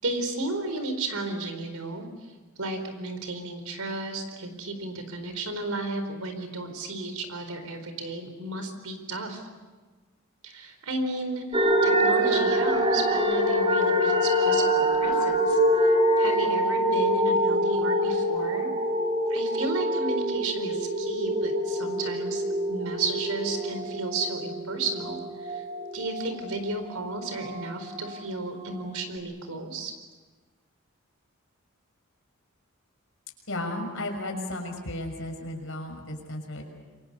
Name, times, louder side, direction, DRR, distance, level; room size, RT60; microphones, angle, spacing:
voice 1, 0.0-2.0 2.6-9.5 10.4-15.6 16.2-18.7 19.3-22.4 22.7-25.6 25.9-29.9, right 2 dB, 85° right, 7 dB, 4.5 m, -33 dB
sound 1, 11.5-26.4 26.7-28.1 28.6-28.7, equal, 25° right, 3.8 m, -25 dB
voice 2, 33.5-36.6, left 1 dB, 60° left, 3 dB, 6.1 m, -34 dB
28.0 x 24.5 x 6.8 m, 1.3 s
head